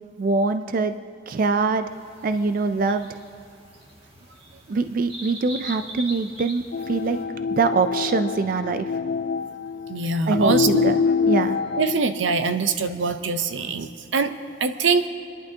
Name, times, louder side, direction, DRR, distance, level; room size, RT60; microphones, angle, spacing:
voice 1, 0.2-1.0 1.3-1.9 2.2-3.1 4.7-7.2 7.6-8.9 10.3-10.9 11.2-11.6, right 3 dB, 50° right, 9 dB, 0.4 m, -23 dB
sound 1, 1.8-7.2, right 1 dB, 30° right, 1.9 m, -41 dB
sound 2, 6.7-12.0, left 5 dB, 60° left, 0.3 m, -25 dB
voice 2, 9.9-10.9 11.8-14.3 14.6-15.1, right 4 dB, 85° right, 9 dB, 0.7 m, -23 dB
29.5 x 11.0 x 2.8 m, 2.5 s
head